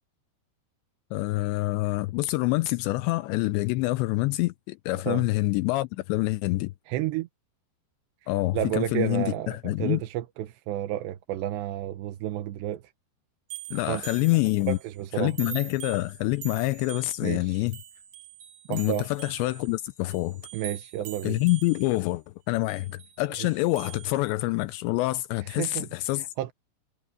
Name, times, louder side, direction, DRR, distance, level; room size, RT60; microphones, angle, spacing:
voice 1, 1.1-6.7 8.3-10.0 13.7-14.8 15.2-17.8 18.7-20.4 21.2-26.2, left 20 dB, 85° left, 2.9 m, -26 dB
voice 2, 6.9-7.3 8.2-12.9 13.9-14.0 14.7-15.5 17.2-17.6 18.7-19.1 20.5-21.4 23.4-23.5 25.4-25.9 26.2-26.5, right 13 dB, 80° right, 3.1 m, -31 dB
sound 1, 13.5-14.9 15.3-22.1 22.7-24.2, right 11 dB, 50° right, 4.9 m, -43 dB
omnidirectional pair, 5.1 m